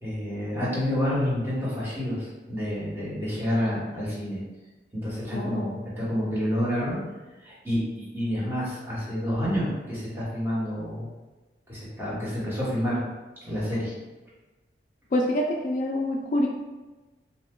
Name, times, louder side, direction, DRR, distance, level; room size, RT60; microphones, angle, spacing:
voice 1, 0.0-4.4 4.9-7.0 7.4-11.1 11.7-13.0 13.4-13.9, equal, 15° right, -9 dB, 1.1 m, -29 dB
voice 2, 5.3-5.6 15.1-16.5, left 1 dB, 45° left, 0 dB, 0.3 m, -26 dB
2.8 x 2.2 x 3.6 m, 1.2 s
head